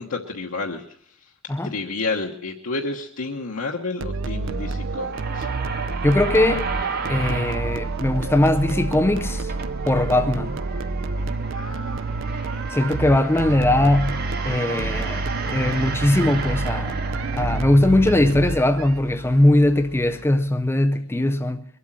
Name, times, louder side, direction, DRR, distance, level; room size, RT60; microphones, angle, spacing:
voice 1, 0.0-5.5 11.5-12.2 12.4-12.8, left 3 dB, 90° left, 1.2 m, -31 dB
sound 1, 4.0-18.9, right 3 dB, 65° right, 0.6 m, -29 dB
sound 2, 4.1-20.5, right 3 dB, 45° right, 1.6 m, -33 dB
voice 2, 6.0-6.7 7.1-9.5 9.9-10.6 12.7-17.0 17.3-21.7, left 1 dB, 10° left, 0.5 m, -20 dB
22.0 x 8.3 x 7.4 m
head